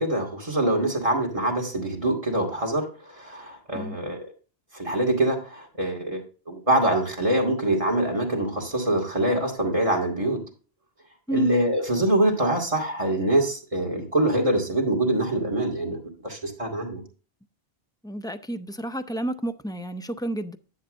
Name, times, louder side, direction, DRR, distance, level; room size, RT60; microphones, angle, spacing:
voice 1, 0.0-4.3 4.7-10.4 11.3-17.0, right 1 dB, 30° right, 2.5 m, -24 dB
voice 2, 18.0-20.6, right 1 dB, 5° left, 0.4 m, -31 dB
10.5 x 8.1 x 2.6 m
omnidirectional pair, 1.1 m